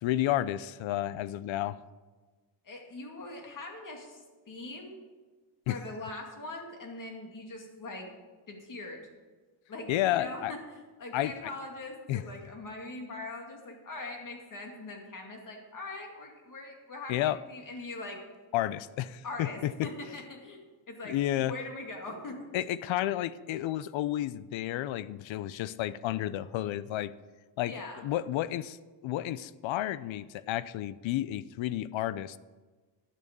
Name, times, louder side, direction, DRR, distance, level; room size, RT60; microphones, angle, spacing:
voice 1, 0.0-1.8 5.7-5.8 9.9-10.5 11.1-11.3 12.1-12.2 17.1-17.4 18.5-19.9 21.1-21.5 22.5-27.1 27.6-28.8 29.0-32.4, left 13 dB, 80° left, 17 dB, 0.6 m, -31 dB
voice 2, 2.6-5.0 5.7-8.1 8.5-9.0 9.7-18.2 19.2-22.4 27.6-28.1, left 2 dB, 45° left, 2 dB, 2.3 m, -42 dB
11.5 x 7.0 x 6.7 m, 1.3 s
cardioid pair, 130°, 46 cm